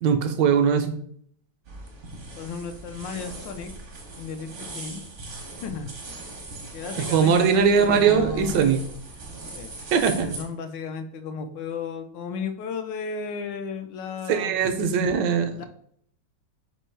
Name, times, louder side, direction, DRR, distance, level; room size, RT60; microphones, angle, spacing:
voice 1, 0.0-0.9 7.1-8.8 9.9-10.3 14.3-15.7, right 6 dB, 75° right, 7 dB, 1.2 m, -20 dB
sound 1, 1.7-10.4, right 2 dB, 45° right, 0.6 m, -39 dB
voice 2, 2.1-3.7 4.2-5.1 5.6-5.9 6.7-8.6 9.5-9.7 10.1-14.8 15.6-15.7, left 5 dB, 75° left, 8 dB, 1.3 m, -34 dB
4.4 x 2.7 x 4.5 m, 0.63 s
omnidirectional pair, 2.1 m